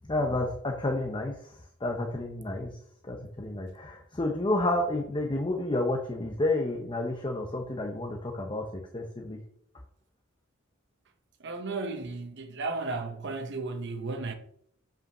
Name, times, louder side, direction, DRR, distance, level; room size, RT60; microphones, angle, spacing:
voice 1, 0.0-1.3 1.8-2.8 3.0-8.6 8.9-9.4, left 2 dB, 25° left, 0.8 m, -30 dB
voice 2, 11.4-14.3, right 3 dB, 55° right, 1.0 m, -34 dB
5.8 x 5.1 x 6.0 m
head